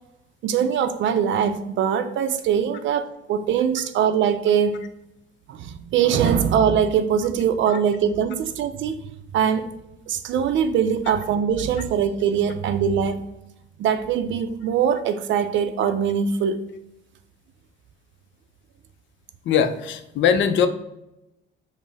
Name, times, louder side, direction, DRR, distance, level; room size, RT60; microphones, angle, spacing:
voice 1, 0.4-4.8 5.5-9.0 9.3-9.7 10.1-13.2 13.8-16.6, right 8 dB, 70° right, 9 dB, 0.4 m, -22 dB
voice 2, 19.5-20.7, left 7 dB, 70° left, 9 dB, 0.5 m, -20 dB
5.2 x 2.0 x 3.3 m, 0.88 s
cardioid pair, 90°, 20 cm